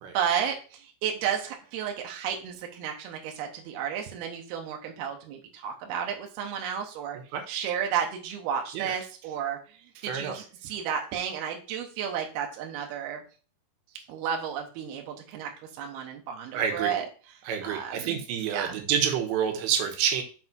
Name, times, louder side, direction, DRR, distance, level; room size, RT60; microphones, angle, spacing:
voice 1, 0.1-7.2 7.5-9.6 10.0-13.2 14.1-15.5 15.8-17.1 17.6-18.2 18.5-18.8, right 8 dB, 75° right, 2 dB, 2.8 m, -32 dB
voice 2, 10.0-10.4 16.5-16.9 17.5-20.2, right 8 dB, 90° right, 4 dB, 3.4 m, -28 dB
6.6 x 4.0 x 4.5 m, 0.37 s
omnidirectional pair, 4.9 m